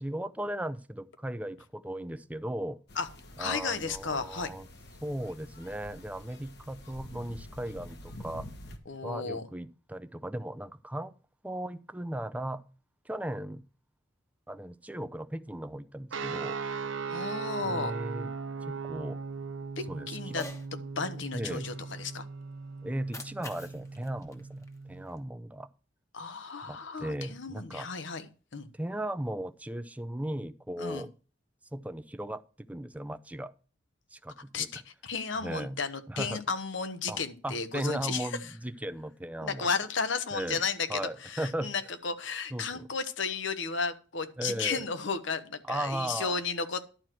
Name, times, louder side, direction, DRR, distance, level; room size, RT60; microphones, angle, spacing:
voice 1, 0.0-2.8 3.4-4.7 5.0-8.5 9.0-11.1 11.4-12.6 13.0-13.6 14.5-16.6 17.6-18.3 18.7-19.2 19.9-20.4 21.3-21.7 22.8-25.7 26.6-27.9 28.7-31.1 31.7-32.4 32.7-33.5 34.1-34.7 35.4-35.8 36.1-36.4 37.1-39.7 40.3-40.6 40.9-41.9 42.5-42.9 44.4-44.9 45.6-46.4, right 1 dB, 10° right, 0.5 m, -37 dB
sound 1, 2.9-8.8, left 1 dB, 60° left, 1.5 m, -47 dB
voice 2, 3.4-4.5 8.9-9.5 17.1-18.0 19.8-20.4 20.7-22.3 26.1-28.3 28.5-28.7 30.8-31.1 34.5-38.3 39.4-46.9, left 5 dB, 75° left, 1.1 m, -34 dB
sound 2, 16.1-25.1, right 5 dB, 85° right, 0.9 m, -38 dB
Cat, 20.2-20.7 22.9-25.2, left 2 dB, 15° left, 1.2 m, -46 dB
11.5 x 4.6 x 7.6 m
head